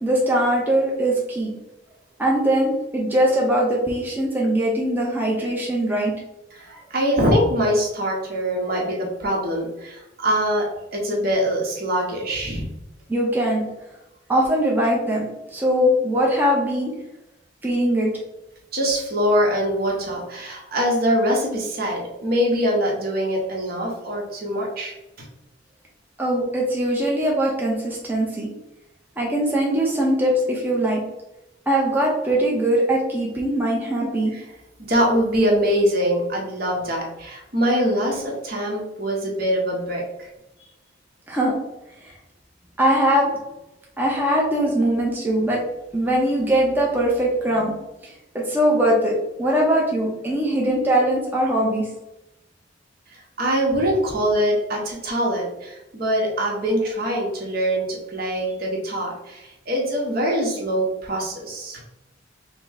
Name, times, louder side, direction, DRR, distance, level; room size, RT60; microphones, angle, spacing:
voice 1, 0.0-1.5 2.2-6.1 13.1-13.6 14.3-16.9 17.6-18.1 26.2-28.5 29.2-31.0 31.7-34.3 41.3-41.6 42.0-42.1 42.8-43.4 44.0-45.6 45.9-47.7 48.0-51.9, right 1 dB, 10° right, -3 dB, 0.7 m, -21 dB
voice 2, 6.5-12.7 18.7-24.9 34.3-34.4 34.8-40.3 53.1-61.8, equal, 55° right, -1 dB, 1.1 m, -23 dB
5.1 x 2.1 x 3.6 m, 0.93 s
head